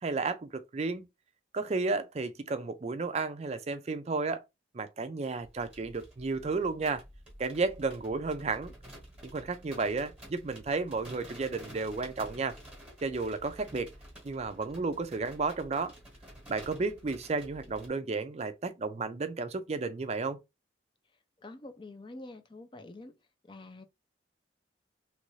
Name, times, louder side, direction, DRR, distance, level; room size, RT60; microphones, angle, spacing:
voice 1, 0.0-1.1 1.5-4.4 4.7-7.0 7.4-8.7 9.2-12.6 13.0-13.9 14.2-15.9 16.5-20.4, right 3 dB, 35° right, 0.4 m, -32 dB
sound 1, 5.4-17.9, right 1 dB, 5° right, 1.1 m, -50 dB
voice 2, 21.4-23.1 23.4-23.8, left 2 dB, 25° left, 0.5 m, -46 dB
3.1 x 2.5 x 3.1 m
head